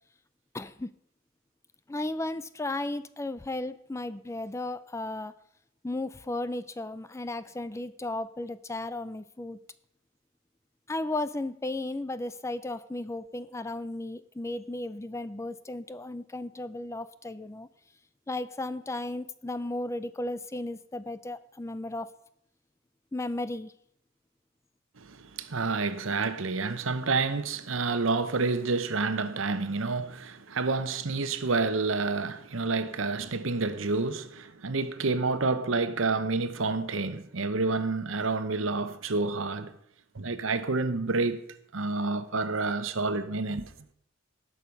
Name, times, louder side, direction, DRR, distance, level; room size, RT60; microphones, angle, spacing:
voice 1, 0.5-0.9 1.9-5.3 5.8-9.6 10.9-17.7 18.3-22.1 23.1-23.7, left 2 dB, 15° left, 0.4 m, -35 dB
voice 2, 25.0-39.7 40.1-41.4 41.7-43.7, right 3 dB, 70° right, 0.9 m, -29 dB
18.0 x 6.4 x 5.2 m
head